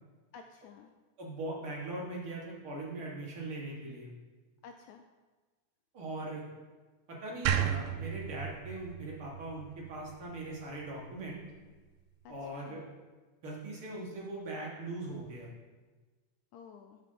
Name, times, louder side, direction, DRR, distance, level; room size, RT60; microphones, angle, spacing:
voice 1, 0.3-0.9 4.6-5.0 12.3-12.8 16.5-17.0, left 6 dB, 80° left, 5 dB, 1.7 m, -52 dB
voice 2, 1.2-4.1 5.9-6.4 7.1-11.4 12.3-12.9 13.4-15.5, right 2 dB, 50° right, -3 dB, 2.2 m, -40 dB
sound 1, 7.5-10.6, right 9 dB, 80° right, 2.2 m, -34 dB
12.0 x 6.6 x 3.8 m, 1.3 s
omnidirectional pair, 3.7 m